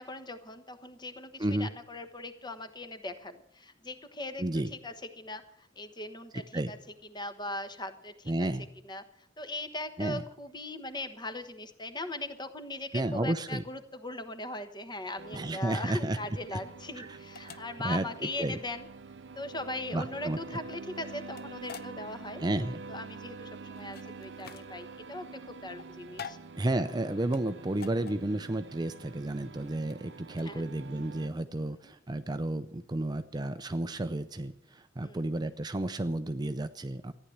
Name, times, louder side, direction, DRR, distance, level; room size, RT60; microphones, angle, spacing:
voice 1, 0.0-6.8 7.0-8.5 8.8-18.9 19.3-22.5 22.9-26.4 30.4-30.6 31.8-31.9 35.0-35.3, left 2 dB, 25° left, 9 dB, 1.2 m, -40 dB
voice 2, 4.4-4.7 6.3-6.7 8.3-8.7 10.0-10.2 12.9-13.6 15.3-16.2 16.5-16.6 17.0-17.1 17.4-17.6 17.8-18.6 19.9-20.4 22.4-22.8 26.6-37.1, right 1 dB, 20° right, 10 dB, 0.5 m, -32 dB
sound 1, 15.2-31.3, right 4 dB, 65° right, 0.6 m, -47 dB
sound 2, 17.3-31.0, left 6 dB, 55° left, 0.7 m, -50 dB
14.5 x 10.0 x 7.9 m, 0.76 s
head